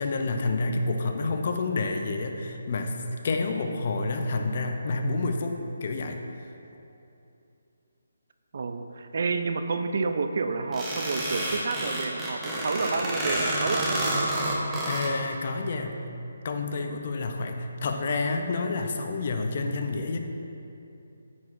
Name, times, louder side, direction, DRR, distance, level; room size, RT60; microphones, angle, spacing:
voice 1, 0.0-3.0 3.2-6.2 14.9-16.0 16.4-20.2, left 3 dB, 45° left, 5 dB, 0.5 m, -29 dB
voice 2, 8.5-14.2, right 4 dB, 55° right, 7 dB, 0.4 m, -29 dB
sound 1, 10.7-15.1, right 1 dB, 10° right, 0.8 m, -29 dB
9.3 x 4.8 x 2.5 m, 2.8 s
hypercardioid pair, 160°, 0 cm